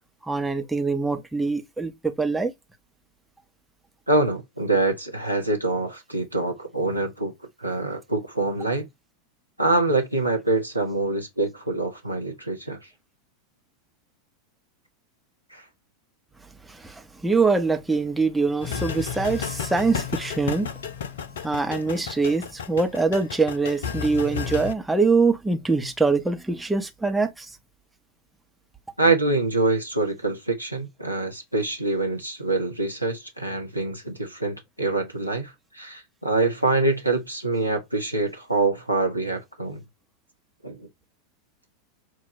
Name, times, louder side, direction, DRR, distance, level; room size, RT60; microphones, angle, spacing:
voice 1, 0.2-2.5 16.7-20.7 21.4-27.5, right 4 dB, 5° right, 1.2 m, -24 dB
voice 2, 4.1-7.3 7.6-8.9 9.6-12.8 15.5-15.6 29.0-39.8 40.6-40.9, right 2 dB, 90° right, 1.2 m, -25 dB
sound 1, 18.6-24.7, left 7 dB, 60° left, 0.8 m, -32 dB
7.7 x 2.8 x 5.4 m
figure-of-eight pair, 90°, 0 cm